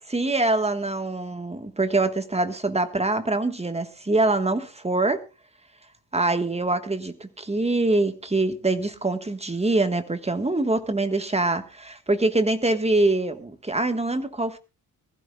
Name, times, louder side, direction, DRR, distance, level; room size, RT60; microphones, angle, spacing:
voice 1, 0.1-5.2 6.1-14.6, right 2 dB, 15° right, 9 dB, 1.5 m, -24 dB
23.0 x 15.0 x 2.3 m, 0.29 s
wide cardioid pair, 110°, 38 cm